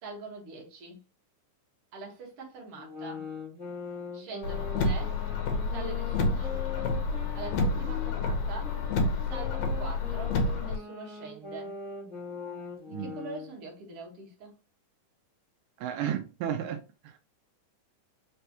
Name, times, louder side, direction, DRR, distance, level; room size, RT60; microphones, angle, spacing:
voice 1, 0.0-1.0 1.9-3.3 4.1-5.2 5.7-6.6 7.3-8.8 9.3-11.7 12.9-14.5, right 4 dB, 55° right, 2.3 m, -43 dB
sound 1, 2.7-8.1 8.6-13.5, left 4 dB, 10° right, 0.5 m, -41 dB
Car, 4.4-10.8, left 3 dB, 70° left, 2.0 m, -29 dB
voice 2, 15.8-17.2, right 9 dB, 85° right, 2.1 m, -33 dB
5.3 x 3.3 x 2.8 m
omnidirectional pair, 3.7 m